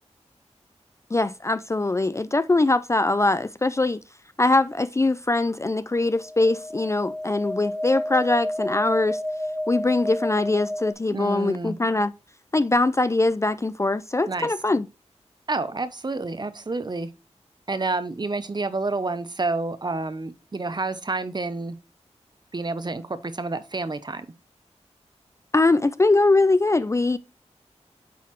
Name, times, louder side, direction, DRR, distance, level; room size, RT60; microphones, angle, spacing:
voice 1, 1.1-4.0 4.4-9.2 9.7-12.1 12.5-14.9 25.5-27.2, left 2 dB, 25° left, 0.3 m, -22 dB
sound 1, 6.1-10.9, left 1 dB, 10° right, 0.9 m, -30 dB
voice 2, 11.1-11.8 14.3-14.5 15.5-17.1 17.7-21.8 22.5-24.3, right 3 dB, 40° right, 0.7 m, -29 dB
8.3 x 4.0 x 3.1 m
wide cardioid pair, 65°, 12 cm